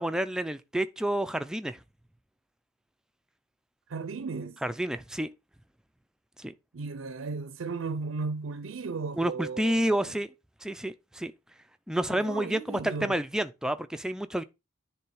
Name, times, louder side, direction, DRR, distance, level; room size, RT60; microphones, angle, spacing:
voice 1, 0.0-1.8 4.6-5.3 6.4-6.5 9.2-10.3 10.6-11.3 11.9-14.4, right 1 dB, 5° right, 0.4 m, -29 dB
voice 2, 3.9-4.6 6.7-10.1 12.1-13.2, right 4 dB, 70° right, 0.5 m, -35 dB
10.0 x 3.4 x 4.8 m
head